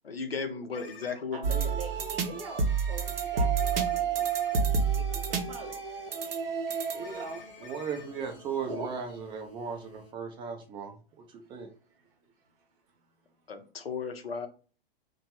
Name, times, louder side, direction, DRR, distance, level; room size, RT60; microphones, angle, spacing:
voice 1, 0.0-1.7 13.5-14.5, left 5 dB, 80° left, 7 dB, 0.6 m, -35 dB
sound 1, 0.7-10.1, left 3 dB, 25° left, 0.7 m, -51 dB
voice 2, 1.3-4.3 4.9-5.8 6.2-6.4 6.9-7.4 8.2-8.3 8.6-8.9 11.4-12.7, right 3 dB, 40° right, 3 dB, 1.0 m, -43 dB
sound 2, 1.4-7.3, right 6 dB, 75° right, 0.6 m, -29 dB
voice 3, 7.6-11.7, right 6 dB, 15° right, 4 dB, 0.4 m, -37 dB
2.9 x 2.2 x 2.9 m, 0.37 s
figure-of-eight pair, 100°, 29 cm